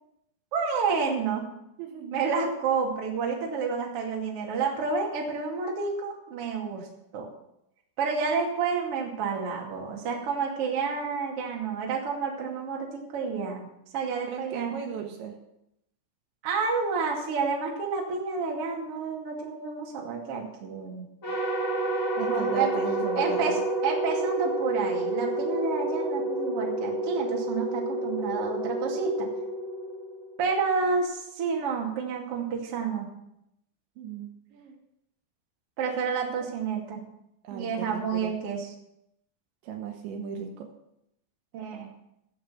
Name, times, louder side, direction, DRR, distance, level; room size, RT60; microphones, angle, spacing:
voice 1, 0.5-1.4 2.1-6.9 7.1-7.3 8.0-13.6 13.9-14.7 16.4-21.0 22.2-22.7 23.2-29.3 30.4-33.1 35.8-37.0 37.5-38.7 41.5-41.9, right 5 dB, 40° right, -1 dB, 2.5 m, -29 dB
voice 2, 1.8-2.3 14.3-15.4 22.2-23.6 34.0-34.8 37.4-38.4 39.6-40.7, right 6 dB, 75° right, 3 dB, 3.6 m, -37 dB
sound 1, 21.2-30.5, right 2 dB, 15° left, 4.7 m, -29 dB
14.5 x 7.6 x 7.0 m, 0.81 s
omnidirectional pair, 5.5 m